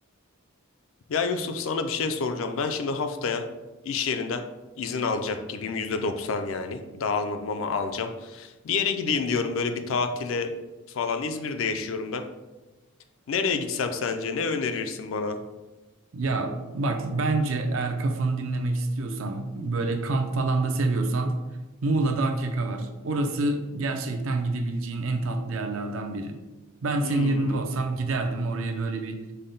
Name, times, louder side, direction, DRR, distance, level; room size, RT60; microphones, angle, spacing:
voice 1, 1.1-3.5 3.8-4.5 4.8-10.5 10.9-12.2 13.3-15.4 27.0-27.7, left 4 dB, 65° left, 7 dB, 0.4 m, -28 dB
voice 2, 16.1-21.3 21.8-26.4 26.8-29.2, right 2 dB, 65° right, 5 dB, 0.5 m, -27 dB
5.5 x 2.1 x 3.8 m, 1.1 s
head